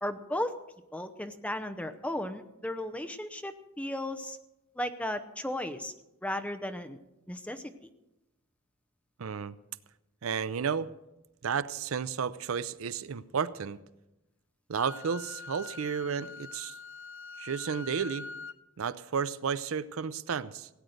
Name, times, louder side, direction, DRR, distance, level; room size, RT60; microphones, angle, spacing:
voice 1, 0.0-0.6 0.9-4.4 4.8-5.9 6.2-7.0 7.3-7.9, left 1 dB, 5° left, 8 dB, 0.7 m, -35 dB
voice 2, 9.2-9.5 10.2-10.9 11.4-13.8 14.7-16.7 17.4-18.3 18.8-20.7, right 6 dB, 70° right, 16 dB, 0.5 m, -32 dB
Wind instrument woodwind instrument, 14.7-18.6, left 4 dB, 60° left, 0.6 m, -44 dB
17.0 x 9.2 x 6.5 m, 0.95 s
head